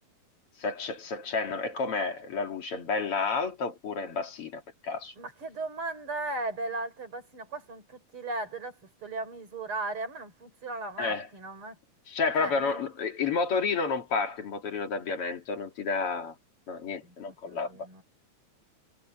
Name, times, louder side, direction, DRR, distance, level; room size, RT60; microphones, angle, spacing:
voice 1, 0.6-5.1 11.0-11.3 12.1-16.3 16.7-17.7, left 4 dB, 50° left, 2.9 m, -30 dB
voice 2, 5.2-11.8 12.4-12.8 17.0-18.0, right 2 dB, 45° right, 5.4 m, -37 dB
omnidirectional pair, 3.4 m